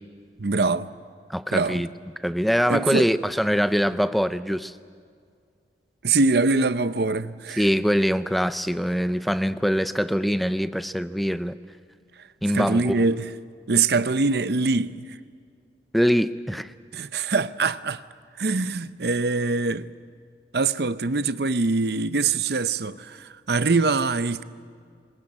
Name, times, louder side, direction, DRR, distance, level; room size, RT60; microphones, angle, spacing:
voice 1, 0.4-0.9 1.5-1.8 2.7-3.1 6.0-7.7 12.5-13.3 13.7-15.0 16.9-18.0 18.4-19.9 20.5-24.4, right 3 dB, 60° right, 0.7 m, -23 dB
voice 2, 1.3-1.9 2.2-4.7 7.6-11.5 12.4-13.0 15.9-16.7, equal, ahead, 0.5 m, -23 dB
21.5 x 19.5 x 9.9 m
head